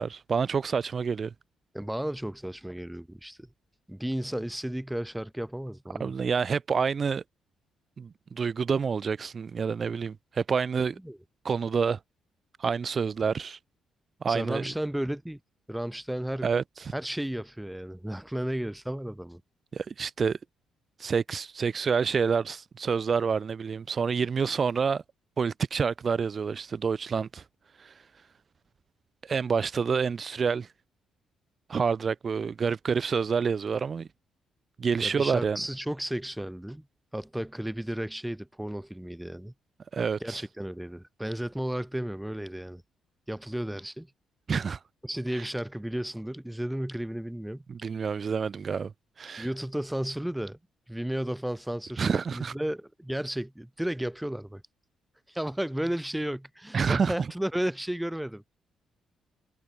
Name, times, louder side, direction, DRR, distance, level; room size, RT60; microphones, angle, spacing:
voice 1, 0.0-1.3 6.0-7.2 8.0-10.9 11.4-12.0 12.6-13.6 14.2-14.6 16.4-16.9 19.7-20.4 21.0-25.0 25.4-27.4 27.8-27.9 29.2-30.7 31.7-34.1 34.8-35.6 39.9-40.4 44.5-44.8 45.3-45.4 47.7-48.9 49.2-49.5 52.0-52.5 56.7-57.1, right 6 dB, 40° right, 0.9 m, -28 dB
voice 2, 1.7-3.5 3.9-6.1 11.0-11.2 14.3-15.4 15.7-16.5 16.9-19.4 35.0-36.9 37.1-39.5 40.2-42.8 43.3-44.1 45.0-47.6 49.4-50.6 50.9-54.6 55.3-58.4, right 1 dB, 5° right, 2.0 m, -33 dB
cardioid pair, 90°, 0 cm